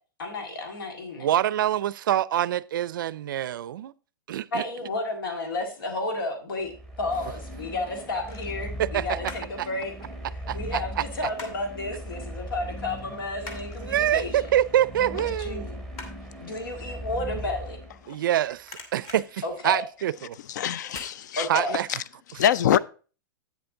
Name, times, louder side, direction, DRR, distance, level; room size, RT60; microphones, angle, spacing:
voice 1, 0.2-1.3 4.5-9.9 10.3-14.4 15.0-15.8 16.4-17.8 19.4-19.8 21.3-21.8, left 2 dB, 90° left, 2.1 m, -32 dB
voice 2, 1.2-3.9 4.3-4.6 8.8-9.2 9.6-9.7 10.5-10.8 13.9-15.6 18.1-18.6 18.9-20.4 21.5-21.9, right 12 dB, 70° right, 0.4 m, -25 dB
sound 1, 6.6-18.3, equal, 5° left, 0.9 m, -38 dB
sound 2, 6.8-7.4 8.2-9.6 9.9-11.8 12.1-12.3 12.7-18.3 18.6-20.2 20.9-21.2 21.6-21.7, left 3 dB, 25° left, 1.4 m, -45 dB
voice 3, 20.5-21.5 22.3-22.8, left 10 dB, 60° left, 0.4 m, -23 dB
8.4 x 7.0 x 3.7 m
supercardioid pair, 170°, 11 cm